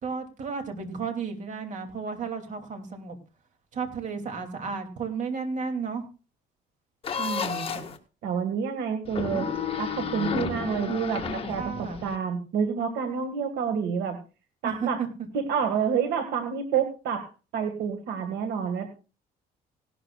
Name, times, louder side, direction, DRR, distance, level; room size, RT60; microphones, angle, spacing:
voice 1, 0.0-3.2 3.7-6.0 11.5-12.0 14.6-15.1, right 5 dB, 45° right, 5 dB, 2.8 m, -33 dB
sound 1, 7.0-8.0 9.1-12.2, left 6 dB, 35° left, 1.7 m, -32 dB
voice 2, 7.2-7.9 8.2-9.5 9.8-14.2 14.6-15.0 15.3-17.3 17.5-18.9, right 7 dB, 80° right, 6 dB, 1.9 m, -28 dB
18.0 x 12.0 x 2.4 m, 0.34 s
cardioid pair, 110°, 17 cm